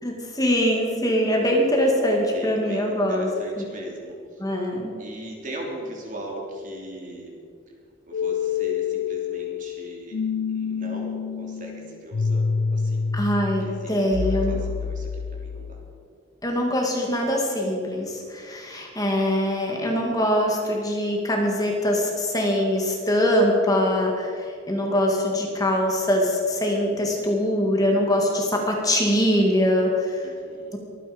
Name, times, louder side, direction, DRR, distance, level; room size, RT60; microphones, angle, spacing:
voice 1, 0.0-3.3 3.6-3.7 4.4-4.9 13.1-14.6 16.4-30.3 30.7-30.8, equal, 20° left, 0 dB, 2.1 m, -23 dB
voice 2, 2.2-4.4 5.0-7.3 8.1-10.2 10.5-13.3 13.6-15.8 30.2-30.8, right 1 dB, 45° right, -1 dB, 3.2 m, -39 dB
sound 1, 8.1-16.0, left 5 dB, 90° left, 0.5 m, -28 dB
23.5 x 10.0 x 5.2 m, 2.3 s
head